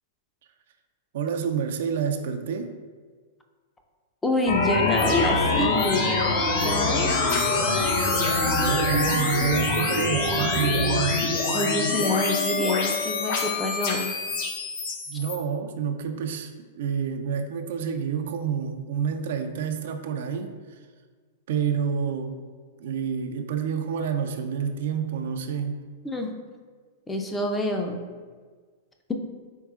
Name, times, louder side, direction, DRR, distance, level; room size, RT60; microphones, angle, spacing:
voice 1, 1.1-2.8 8.6-11.3 15.1-20.6 21.5-22.5 22.8-25.9, right 7 dB, 70° right, 6 dB, 0.3 m, -28 dB
voice 2, 4.2-6.2 6.6-7.2 10.4-10.5 11.5-14.2 26.0-26.3 27.1-28.0, left 2 dB, 10° left, 3 dB, 0.4 m, -27 dB
sound 1, 4.5-15.4, left 3 dB, 60° left, 0.7 m, -24 dB
4.5 x 3.5 x 2.3 m, 1.5 s
hypercardioid pair, 120°, 0 cm